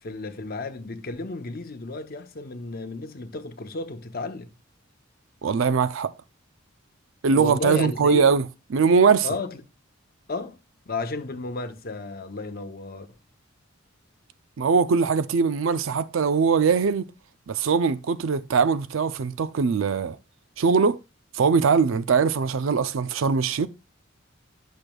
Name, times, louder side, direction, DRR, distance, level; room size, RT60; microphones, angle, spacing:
voice 1, 0.0-4.5 7.3-8.3 9.2-9.6 10.3-10.6 10.9-13.1, left 3 dB, 45° left, 0.7 m, -33 dB
voice 2, 5.4-6.1 7.2-8.5 8.7-9.3 14.6-17.1 17.5-20.2 20.6-21.0 21.3-23.7, right 5 dB, 70° right, 0.4 m, -21 dB
10.5 x 6.3 x 2.3 m
head